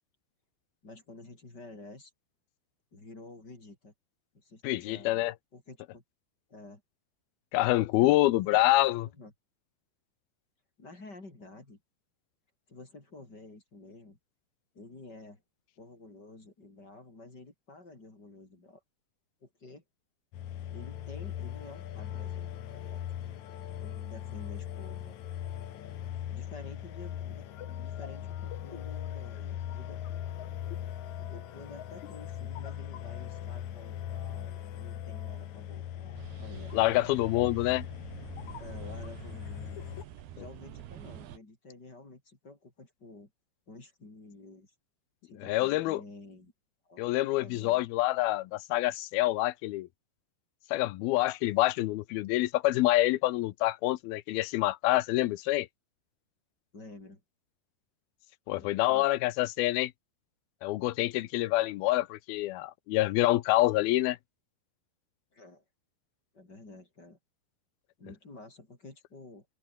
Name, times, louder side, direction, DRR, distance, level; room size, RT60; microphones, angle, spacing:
voice 1, 0.8-2.1 2.9-3.9 4.3-6.0 6.5-6.8 8.0-8.6 8.9-9.3 10.8-11.8 12.7-14.2 14.7-15.4 15.8-18.8 19.4-19.8 20.7-23.4 23.8-25.2 26.3-30.2 31.2-36.8 38.6-39.9 40.3-43.3 43.7-44.7 45.2-46.5 46.9-47.0 47.4-47.9 56.7-57.2 58.5-59.1 65.3-65.6 66.3-67.2 68.0-69.5, left 2 dB, 25° left, 5.5 m, -50 dB
voice 2, 4.6-5.3 7.5-9.1 36.7-37.8 45.5-46.0 47.0-49.9 50.7-55.7 58.5-59.9 60.6-64.2, left 17 dB, 80° left, 2.7 m, -27 dB
sound 1, 20.3-40.0, left 11 dB, 60° left, 2.4 m, -39 dB
sound 2, 36.2-41.4, right 11 dB, 85° right, 3.8 m, -47 dB
open air
omnidirectional pair, 4.5 m